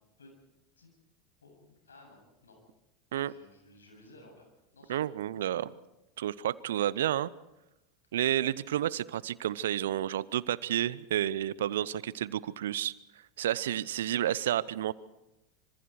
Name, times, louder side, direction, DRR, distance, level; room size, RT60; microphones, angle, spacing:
voice 1, 1.4-2.6 3.2-5.0 13.5-13.7, left 2 dB, 80° left, 2 dB, 7.9 m, -56 dB
voice 2, 4.9-5.7 6.2-7.3 8.1-12.9 13.4-14.9, right 12 dB, 70° right, 20 dB, 0.7 m, -30 dB
26.0 x 25.0 x 4.7 m, 0.92 s
figure-of-eight pair, 80°, 0 cm